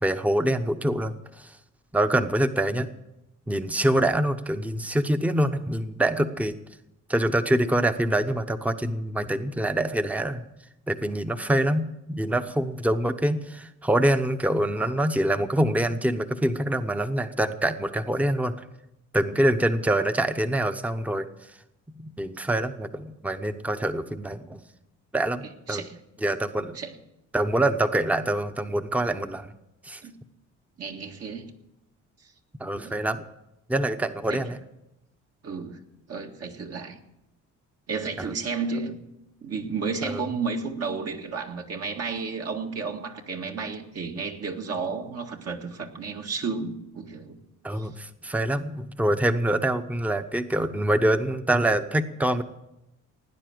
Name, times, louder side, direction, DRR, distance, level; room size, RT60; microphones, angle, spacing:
voice 1, 0.0-1.5 1.9-2.9 3.5-6.5 7.1-10.4 10.9-18.5 19.1-21.3 22.2-24.6 25.1-25.8 26.2-26.8 27.3-29.5 29.8-30.0 32.6-33.2 33.7-34.6 38.3-38.4 40.0-40.2 47.6-52.4, right 1 dB, 5° right, 9 dB, 0.9 m, -25 dB
voice 2, 25.7-26.0 26.7-26.9 30.0-30.2 30.8-31.5 32.8-33.0 34.3-34.5 35.4-35.8 36.1-37.0 37.9-39.0 39.4-47.4 47.8-47.9, right 4 dB, 55° right, 2 dB, 1.9 m, -32 dB
17.5 x 9.8 x 7.8 m, 0.90 s
cardioid pair, 90°, 30 cm